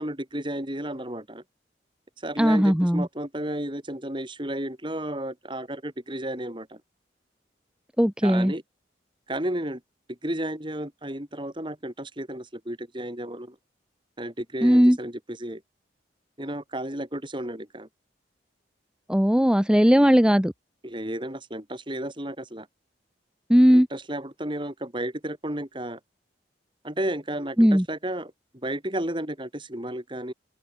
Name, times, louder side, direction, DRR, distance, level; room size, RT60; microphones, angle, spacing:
voice 1, 0.0-1.4 2.2-6.8 8.2-8.6 9.3-9.8 10.1-13.6 14.2-15.6 16.4-17.9 20.8-22.7 23.7-26.0 26.8-28.3 28.6-30.3, right 1 dB, 25° right, 5.3 m, -33 dB
voice 2, 2.4-3.1 8.0-8.5 14.6-15.0 19.1-20.5 23.5-23.9 27.6-27.8, equal, 5° right, 1.0 m, -18 dB
open air
head